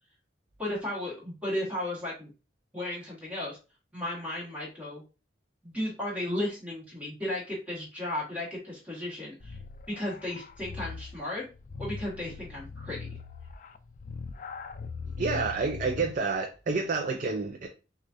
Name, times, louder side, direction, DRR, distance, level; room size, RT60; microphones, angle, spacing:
voice 1, 0.6-2.3 2.7-3.6 3.9-5.0 5.6-9.6 9.9-11.5 11.8-13.0, left 1 dB, 10° right, 1.6 m, -34 dB
sound 1, 9.4-16.3, left 4 dB, 45° left, 0.3 m, -40 dB
voice 2, 15.2-17.7, right 4 dB, 45° right, 0.5 m, -29 dB
6.3 x 2.4 x 2.7 m
head